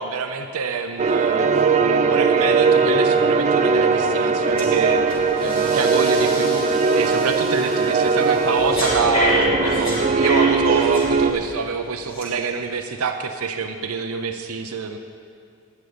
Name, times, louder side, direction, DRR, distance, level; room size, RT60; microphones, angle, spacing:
voice 1, 0.0-1.5 1.8-5.0 5.4-15.0, right 5 dB, 90° right, 6 dB, 0.6 m, -26 dB
sound 1, 1.0-11.3, right 4 dB, 35° right, 0.4 m, -19 dB
Breathing, 4.6-4.8 5.1-11.5 12.1-12.2, left 1 dB, 25° left, 3.4 m, -28 dB
11.5 x 10.0 x 5.1 m, 2.4 s
head